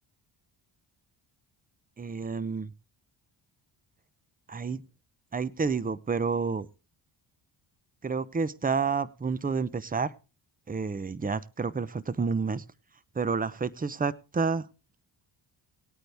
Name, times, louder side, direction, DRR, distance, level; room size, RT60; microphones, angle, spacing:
voice 1, 2.0-2.7 4.5-4.8 5.3-6.7 8.0-10.1 10.7-12.6 13.2-14.6, right 5 dB, 20° right, 18 dB, 0.7 m, -29 dB
19.5 x 9.0 x 3.4 m, 0.32 s
cardioid pair, 80°, 48 cm